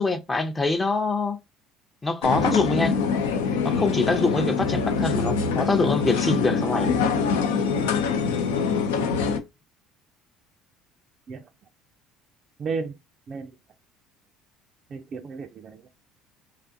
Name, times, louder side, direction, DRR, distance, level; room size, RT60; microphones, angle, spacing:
voice 1, 0.0-1.4 2.0-3.0 3.6-7.0, left 3 dB, 20° left, 0.5 m, -24 dB
sound 1, 2.2-9.4, left 5 dB, 90° left, 0.4 m, -24 dB
voice 2, 12.6-13.0 13.3-13.6 14.9-15.9, right 4 dB, 45° right, 0.3 m, -33 dB
2.5 x 2.4 x 2.5 m
supercardioid pair, 80°, 0 cm